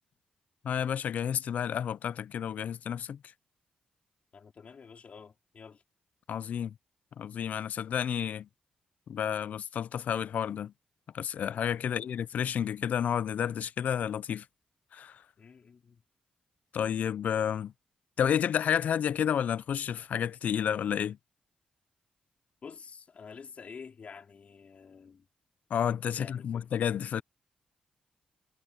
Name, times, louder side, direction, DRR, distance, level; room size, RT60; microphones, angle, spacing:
voice 1, 0.6-3.2 6.3-6.7 7.2-8.5 9.1-10.7 11.1-14.4 14.9-15.2 16.7-17.7 18.2-21.2 25.7-27.2, left 8 dB, 70° left, 0.5 m, -30 dB
voice 2, 4.3-5.8 11.8-12.2 15.4-16.0 22.6-25.3 26.2-26.6, left 6 dB, 55° left, 4.2 m, -49 dB
cardioid pair, 65°, 3 cm